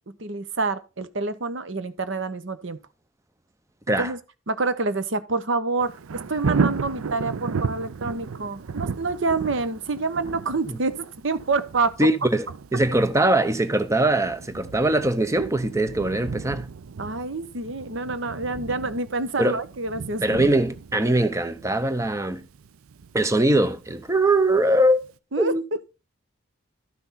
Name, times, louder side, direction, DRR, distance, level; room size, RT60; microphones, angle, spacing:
voice 1, 0.2-2.8 3.9-4.2 4.5-11.0 11.2-11.9 17.0-20.2 25.3-25.9, right 3 dB, 60° right, 0.9 m, -27 dB
Thunder, 5.8-24.6 25.0-25.1, right 5 dB, 85° right, 0.5 m, -34 dB
voice 2, 12.0-16.7 19.4-19.6 20.2-22.5 23.1-25.0 25.4-25.6, right 1 dB, 15° right, 0.6 m, -22 dB
12.0 x 6.0 x 4.1 m
head